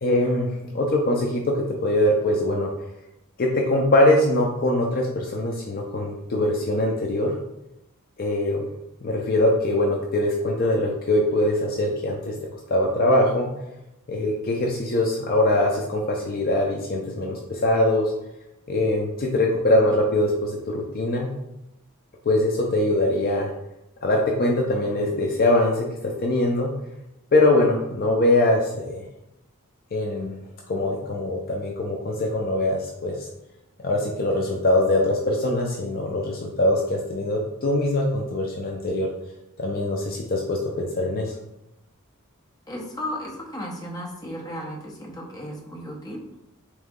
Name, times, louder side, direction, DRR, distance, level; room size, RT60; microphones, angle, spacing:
voice 1, 0.0-2.7 3.4-7.4 8.2-8.6 9.0-12.3 12.7-13.5 14.1-18.1 18.7-21.3 22.2-23.5 24.0-26.7 27.3-29.0 29.9-30.4 30.7-33.3 33.8-39.1 39.6-41.3, left 1 dB, 45° left, 0 dB, 0.5 m, -22 dB
voice 2, 42.7-46.2, equal, 20° left, -1 dB, 0.8 m, -34 dB
3.7 x 3.1 x 3.6 m, 0.88 s
head